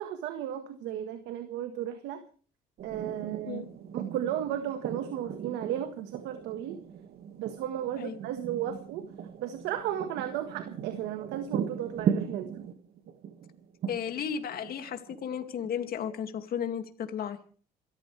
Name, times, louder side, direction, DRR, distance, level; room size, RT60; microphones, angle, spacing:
voice 1, 0.0-2.2 2.8-3.6 3.9-6.8 7.4-9.0 9.4-12.5, right 11 dB, 85° right, 8 dB, 1.6 m, -34 dB
sound 1, 2.8-15.8, right 8 dB, 65° right, 2.0 m, -38 dB
voice 2, 13.9-17.4, left 8 dB, 60° left, 7 dB, 2.4 m, -34 dB
28.0 x 14.0 x 3.4 m, 0.41 s
supercardioid pair, 80°, 17 cm